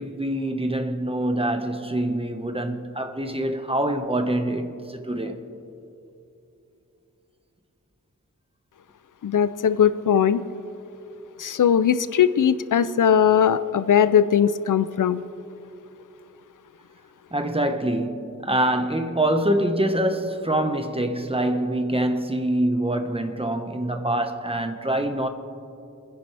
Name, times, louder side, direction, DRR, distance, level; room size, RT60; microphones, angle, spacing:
voice 1, 0.0-5.4 17.3-25.3, right 1 dB, 20° right, 1.4 m, -25 dB
voice 2, 9.2-10.4 11.4-15.2, left 8 dB, 80° left, 0.6 m, -19 dB
29.0 x 10.5 x 3.4 m
cardioid pair, 50°, 31 cm